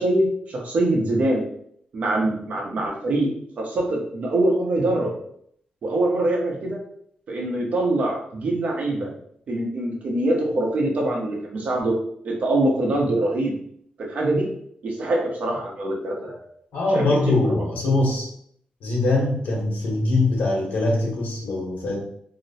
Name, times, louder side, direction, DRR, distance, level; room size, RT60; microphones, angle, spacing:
voice 1, 0.0-1.4 1.9-3.3 3.6-5.1 5.8-6.8 7.3-9.1 9.5-11.9 12.2-13.5 14.0-14.5 14.8-16.5 16.9-17.4, right 1 dB, 55° right, -1 dB, 0.9 m, -23 dB
voice 2, 16.7-18.3 18.8-22.0, left 2 dB, 85° left, -2 dB, 1.2 m, -22 dB
2.9 x 2.0 x 4.1 m, 0.67 s
wide cardioid pair, 140°, 3 cm